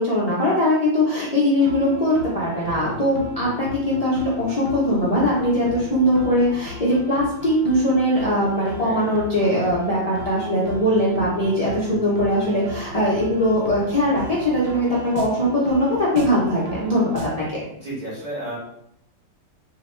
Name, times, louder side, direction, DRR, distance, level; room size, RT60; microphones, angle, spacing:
voice 1, 0.0-17.6, equal, 70° left, -8 dB, 0.3 m, -21 dB
sound 1, 1.6-17.5, equal, 75° right, 0.7 m, -36 dB
voice 2, 8.8-9.1 17.8-18.6, right 1 dB, 25° right, -7 dB, 1.3 m, -32 dB
2.9 x 2.8 x 4.3 m, 0.75 s
omnidirectional pair, 2.1 m